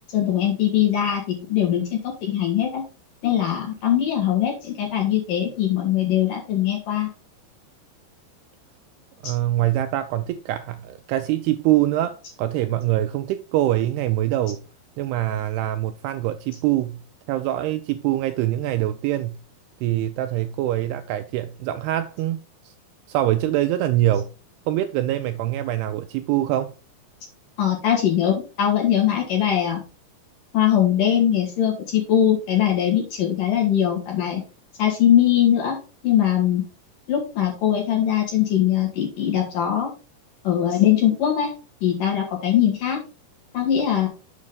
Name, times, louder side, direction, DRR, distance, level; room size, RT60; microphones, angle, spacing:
voice 1, 0.1-2.8 3.2-7.1 9.2-9.3 27.6-29.8 30.5-34.4 34.8-35.8 36.0-36.6 37.1-39.9 40.4-41.5 41.8-43.0 43.5-44.1, left 10 dB, 55° left, 3.2 m, -21 dB
voice 2, 9.2-14.6 15.0-19.4 19.8-22.4 22.6-22.7 23.1-24.3 24.7-26.7, right 14 dB, 85° right, 2.4 m, -24 dB
7.6 x 6.1 x 3.7 m
omnidirectional pair, 5.0 m